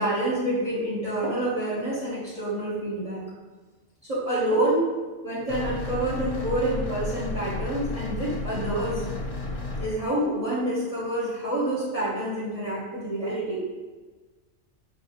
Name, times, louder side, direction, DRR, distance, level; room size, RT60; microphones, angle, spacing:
voice 1, 0.0-3.2 4.0-4.9 5.2-9.0 9.8-13.6, right 1 dB, 30° right, -8 dB, 1.1 m, -27 dB
sound 1, 5.5-9.9, left 2 dB, 80° left, 1.2 m, -32 dB
5.6 x 2.7 x 3.0 m, 1.3 s
omnidirectional pair, 1.3 m